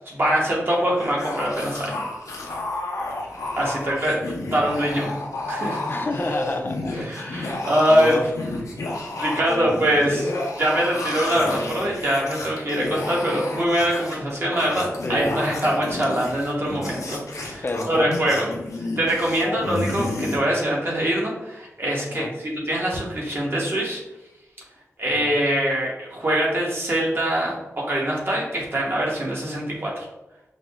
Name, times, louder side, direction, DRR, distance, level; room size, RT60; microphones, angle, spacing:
voice 1, 0.1-2.0 3.6-5.1 5.5-5.8 6.9-8.2 9.0-10.3 10.6-18.5 19.0-24.0 25.0-30.1, right 1 dB, 45° right, -3 dB, 1.2 m, -23 dB
sound 1, 1.0-20.4, left 2 dB, 90° left, 0.7 m, -31 dB
voice 2, 5.9-8.7 9.5-9.7 15.0-15.5 17.6-18.5 19.3-19.7 22.0-22.4 25.1-25.4, left 2 dB, 40° left, 5 dB, 0.5 m, -30 dB
5.1 x 2.1 x 3.4 m, 0.94 s
wide cardioid pair, 100°, 5 cm